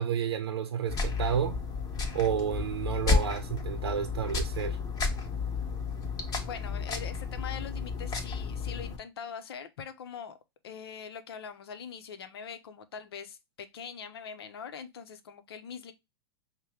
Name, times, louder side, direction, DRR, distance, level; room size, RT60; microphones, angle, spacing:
voice 1, 0.0-1.6 2.1-4.8, right 8 dB, 80° right, 0.6 m, -30 dB
sound 1, 0.9-9.0, left 4 dB, 30° left, 1.3 m, -32 dB
voice 2, 6.4-10.4 10.6-15.9, left 7 dB, 75° left, 0.7 m, -42 dB
5.5 x 2.2 x 3.2 m
hypercardioid pair, 105°, 13 cm